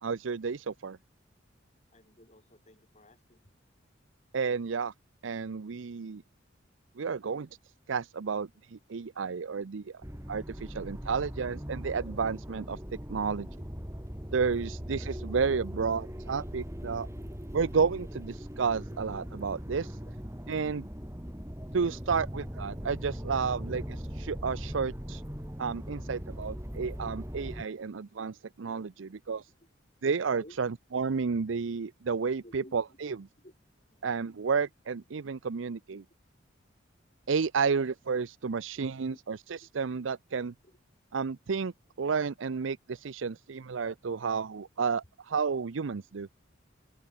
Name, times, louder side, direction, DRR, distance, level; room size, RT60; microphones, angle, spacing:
voice 1, 0.0-1.0 4.3-4.9 5.2-6.2 7.0-7.5 7.9-10.0 10.3-12.8 13.1-13.5 14.3-17.1 17.5-20.0 20.5-20.9 21.7-25.2 25.6-29.5 30.0-33.2 34.0-36.0 37.3-40.5 41.1-41.7 42.0-46.3, right 5 dB, 80° right, 0.6 m, -31 dB
voice 2, 1.9-3.4 18.9-19.0 20.0-20.1 22.1-22.5 23.5-23.6 29.0-29.2 30.4-30.6 32.4-33.0 33.4-33.5 33.9-34.1 35.9-36.0 39.1-39.2 40.6-40.8, left 1 dB, 35° left, 7.7 m, -56 dB
sound 1, 10.0-27.6, equal, 15° right, 4.2 m, -40 dB
open air
head